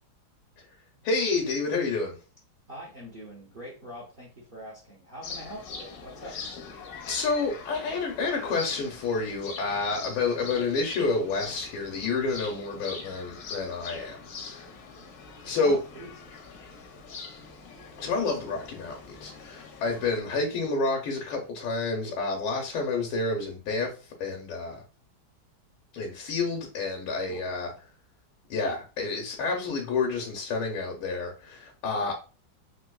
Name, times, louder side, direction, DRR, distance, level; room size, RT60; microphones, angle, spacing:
voice 1, 1.0-2.2 7.0-14.2 14.5-14.6 15.4-15.8 18.0-24.8 25.9-27.7 28.5-32.1, left 3 dB, 85° left, 1.6 m, -29 dB
voice 2, 2.7-6.4 15.6-16.1 27.3-27.8, equal, 75° right, 0.5 m, -43 dB
sound 1, 5.2-20.2, left 4 dB, 70° left, 0.9 m, -43 dB
3.9 x 2.5 x 2.2 m
omnidirectional pair, 2.3 m